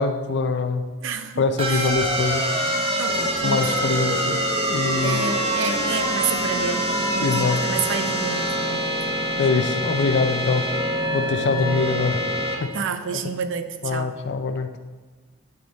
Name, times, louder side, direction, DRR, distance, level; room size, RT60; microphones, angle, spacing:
voice 1, 0.0-0.9 1.4-2.5 3.4-5.2 7.2-7.6 9.4-10.7 11.1-12.2 12.6-12.8 13.8-14.8, left 4 dB, 55° left, 9 dB, 0.5 m, -23 dB
voice 2, 1.0-1.9 3.0-4.1 5.0-8.9 12.7-14.1, right 5 dB, 65° right, 9 dB, 0.5 m, -29 dB
sound 1, 1.6-12.6, right 1 dB, 25° right, 0.9 m, -25 dB
sound 2, 3.1-12.4, left 1 dB, 30° left, 0.9 m, -35 dB
9.3 x 4.8 x 4.0 m, 1.3 s
head